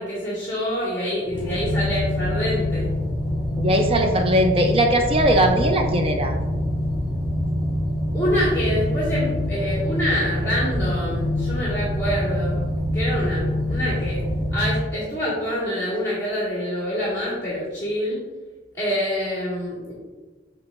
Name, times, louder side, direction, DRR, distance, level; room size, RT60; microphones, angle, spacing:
voice 1, 0.0-2.9 8.1-12.6 12.9-14.2 14.5-18.2 18.7-19.9, equal, 15° left, -9 dB, 1.7 m, -26 dB
sound 1, 1.2-14.7, left 1 dB, 10° right, 1.7 m, -25 dB
voice 2, 3.6-6.3, right 1 dB, 30° right, 4 dB, 0.5 m, -19 dB
6.6 x 6.1 x 2.5 m, 1.3 s
head